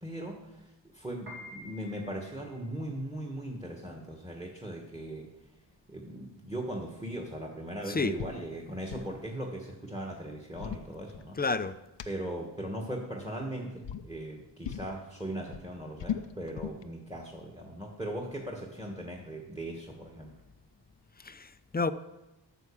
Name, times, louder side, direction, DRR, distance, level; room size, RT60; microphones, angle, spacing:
voice 1, 0.0-0.7 0.9-5.3 5.9-11.4 12.0-20.3, right 1 dB, 10° right, 1 dB, 1.4 m, -39 dB
Piano, 1.2-11.5, left 1 dB, 55° right, 2.4 m, -53 dB
sound 1, 8.2-8.4 8.7-9.2 10.3-11.6 12.0-12.1 13.2-13.5 13.8-14.1 14.6-15.0 15.3-16.8, left 9 dB, 75° left, 0.6 m, -38 dB
voice 2, 11.4-11.7 21.2-21.9, left 4 dB, 20° left, 12 dB, 0.4 m, -30 dB
9.2 x 5.9 x 7.0 m, 0.98 s
wide cardioid pair, 80°, 44 cm